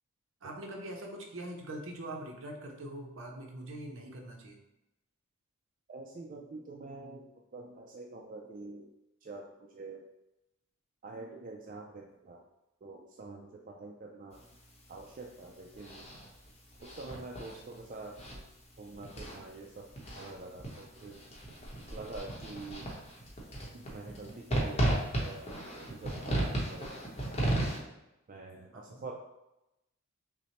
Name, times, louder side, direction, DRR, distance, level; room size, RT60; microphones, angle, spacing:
voice 1, 0.4-4.6 28.7-29.0, right 1 dB, 65° right, 1 dB, 0.7 m, -43 dB
voice 2, 5.9-8.9 9.2-10.1 11.0-12.4 12.8-14.5 14.9-16.1 16.8-18.4 18.8-19.8 20.1-21.2 21.9-22.9 23.7-27.1 28.3-29.1, right 3 dB, 40° right, -1 dB, 0.3 m, -46 dB
sound 1, 14.3-27.8, right 1 dB, 30° left, 0.8 m, -36 dB
5.8 x 2.1 x 2.9 m, 0.92 s
head